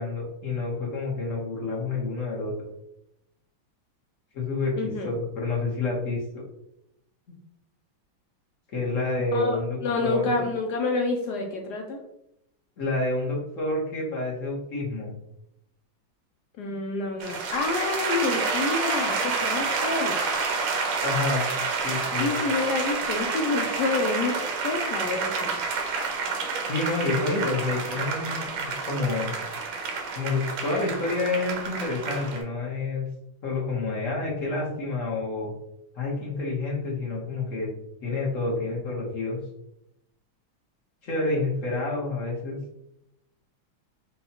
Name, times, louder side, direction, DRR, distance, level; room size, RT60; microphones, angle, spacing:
voice 1, 0.0-2.5 4.3-6.4 8.7-10.3 12.8-15.1 21.0-21.4 21.8-22.3 26.7-29.3 30.1-33.0 33.4-35.5 35.9-37.7 38.0-39.4 41.0-42.6, left 3 dB, 50° left, -3 dB, 1.0 m, -28 dB
voice 2, 4.8-5.1 9.3-12.0 16.6-20.2 22.2-24.3 24.6-25.6, left 3 dB, 75° left, 2 dB, 0.9 m, -28 dB
sound 1, 17.2-32.4, right 4 dB, 75° right, 1.4 m, -29 dB
5.6 x 2.2 x 2.8 m, 0.82 s
omnidirectional pair, 2.3 m